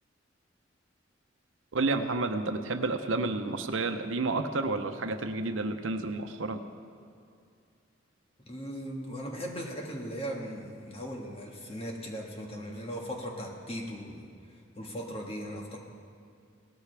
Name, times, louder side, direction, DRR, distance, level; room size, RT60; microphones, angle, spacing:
voice 1, 1.7-6.6, right 3 dB, 90° right, 7 dB, 0.8 m, -30 dB
voice 2, 8.4-15.8, equal, 30° left, 0 dB, 1.7 m, -38 dB
18.5 x 13.0 x 3.4 m, 2.4 s
head